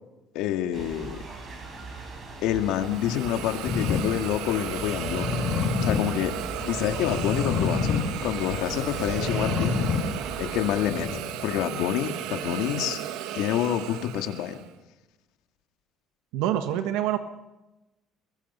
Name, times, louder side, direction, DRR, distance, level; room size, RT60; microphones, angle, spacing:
voice 1, 0.3-1.2 2.4-5.3 5.8-9.9 10.4-13.0 13.3-14.6, left 11 dB, 70° left, 6 dB, 2.1 m, -28 dB
sound 1, 0.7-10.8, right 4 dB, 30° right, 4.7 m, -41 dB
Hiss, 2.6-14.7, right 12 dB, 70° right, 1.3 m, -35 dB
sound 2, 3.7-11.6, left 4 dB, 25° left, 2.6 m, -29 dB
voice 2, 16.3-17.2, right 11 dB, 90° right, 7 dB, 1.5 m, -26 dB
23.5 x 22.0 x 5.6 m, 1.0 s
cardioid pair, 180°, 0 cm